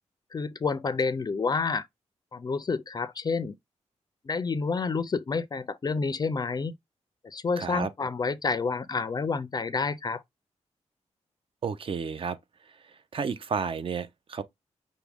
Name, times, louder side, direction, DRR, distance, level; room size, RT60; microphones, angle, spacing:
voice 1, 0.3-1.8 2.3-3.6 4.2-6.8 7.2-10.2, left 4 dB, 35° left, 0.4 m, -29 dB
voice 2, 7.6-7.9 11.6-12.4 13.1-14.4, right 6 dB, 50° right, 0.5 m, -31 dB
5.9 x 2.1 x 3.4 m
wide cardioid pair, 115°, 12 cm